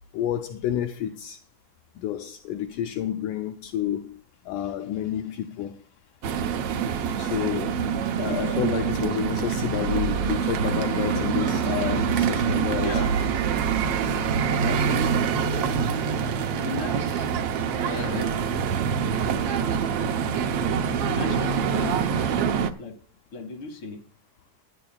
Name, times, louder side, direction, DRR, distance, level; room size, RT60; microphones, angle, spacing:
voice 1, 0.1-1.4 2.0-4.2 4.5-5.8 7.2-7.8 8.2-12.9 15.4-15.8 21.3-21.4 21.7-21.9, left 11 dB, 80° left, 2.1 m, -30 dB
sound 1, 6.2-22.7, right 7 dB, 75° right, 1.4 m, -25 dB
voice 2, 12.8-13.3 13.8-16.1 16.5-17.3 17.8-18.5 20.9-22.0 22.8-23.0 23.3-24.0, left 4 dB, 45° left, 2.6 m, -38 dB
25.0 x 9.5 x 2.3 m
omnidirectional pair, 3.7 m